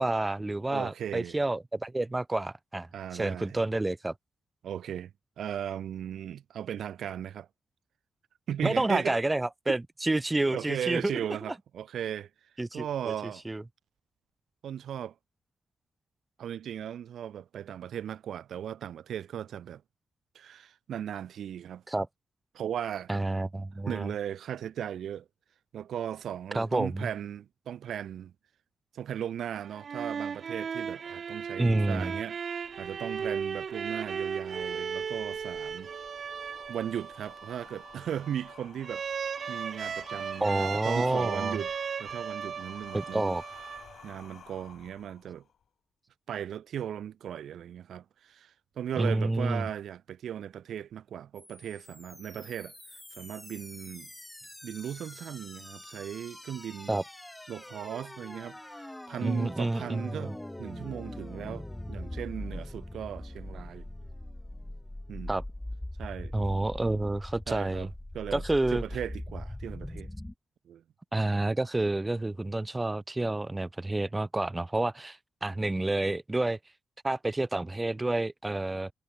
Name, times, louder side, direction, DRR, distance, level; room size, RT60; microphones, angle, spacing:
voice 1, 0.0-4.1 8.6-11.1 12.6-13.6 21.9-22.1 23.1-24.1 26.5-27.1 31.6-32.1 40.4-41.6 42.9-43.4 49.0-49.7 56.9-57.0 59.2-60.3 65.3-65.4 66.3-67.9 68.3-68.8 71.1-76.6 77.0-78.9, right 2 dB, 15° right, 0.3 m, -29 dB
voice 2, 0.7-1.4 2.9-3.6 4.6-7.5 8.5-9.2 10.5-12.3 12.7-13.4 14.6-15.1 16.4-19.8 20.3-21.8 22.5-23.1 23.9-25.3 25.7-28.3 28.9-35.9 36.7-39.0 39.5-41.7 42.0-43.3 44.0-45.4 46.3-52.7 53.1-54.1 54.6-57.0 57.5-63.9 65.1-65.4 66.0-66.3 67.5-67.9 68.1-68.4 68.7-70.1 70.7-70.8, right 9 dB, 75° right, 0.5 m, -37 dB
sound 1, 29.6-44.2, right 6 dB, 45° right, 0.8 m, -36 dB
sound 2, 32.6-45.6, left 8 dB, 55° left, 1.9 m, -54 dB
sound 3, 51.4-70.3, left 1 dB, 5° left, 2.0 m, -42 dB
wide cardioid pair, 165°, 0 cm